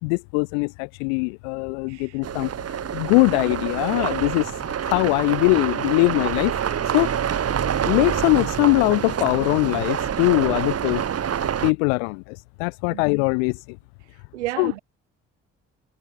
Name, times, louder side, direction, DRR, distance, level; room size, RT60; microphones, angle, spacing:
voice 1, 0.0-2.5 2.9-7.1 7.8-11.0 11.6-13.8 14.6-14.7, left 37 dB, 80° left, 2.3 m, -22 dB
voice 2, 1.9-2.5 12.9-13.0 14.3-14.8, right 17 dB, 85° right, 1.2 m, -33 dB
sound 1, 2.2-11.7, right 8 dB, 45° right, 1.7 m, -26 dB
hypercardioid pair, 50°, 34 cm